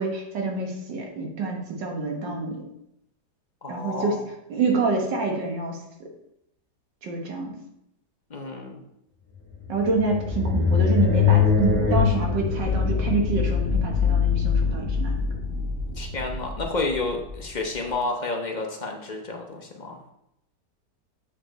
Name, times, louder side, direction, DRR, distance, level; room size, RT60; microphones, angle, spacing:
voice 1, 0.0-2.6 3.7-4.2 4.5-5.8 7.0-7.5 9.7-15.1, right 3 dB, 90° right, 1 dB, 2.0 m, -27 dB
voice 2, 3.6-4.2 8.3-8.8 16.0-20.0, left 3 dB, 45° left, 2 dB, 0.5 m, -30 dB
sound 1, 9.5-17.9, left 6 dB, 10° left, 0.9 m, -23 dB
7.1 x 5.1 x 3.8 m, 0.80 s
omnidirectional pair, 1.9 m